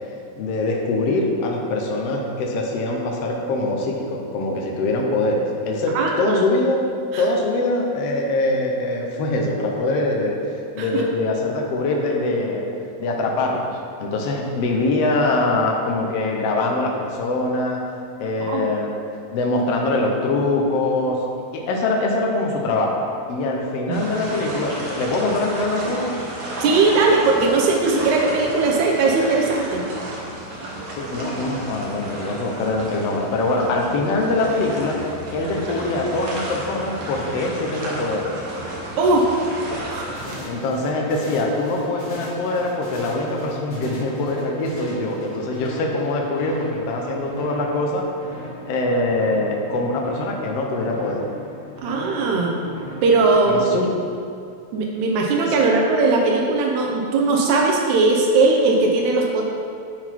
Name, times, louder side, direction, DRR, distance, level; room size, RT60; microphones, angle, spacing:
voice 1, 0.4-6.8 7.2-10.4 10.7-12.7 13.0-17.8 18.2-18.9 19.3-21.2 21.5-23.0 23.3-26.1 31.0-35.0 35.3-38.3 40.4-48.1 48.7-51.3 53.5-53.9, left 2 dB, 70° left, 0 dB, 1.7 m, -23 dB
voice 2, 5.9-6.4 7.1-7.2 10.8-11.0 18.5-18.7 23.9-24.0 26.6-29.9 39.0-39.3 39.9-40.2 51.8-52.6 53.0-53.6 54.7-59.4, right 3 dB, 85° right, -1 dB, 2.2 m, -19 dB
sound 1, 23.9-40.4, right 1 dB, 65° right, 0.9 m, -33 dB
sound 2, 40.1-53.8, right 1 dB, 35° left, 1.9 m, -37 dB
11.0 x 4.0 x 4.5 m, 2.4 s
omnidirectional pair, 3.3 m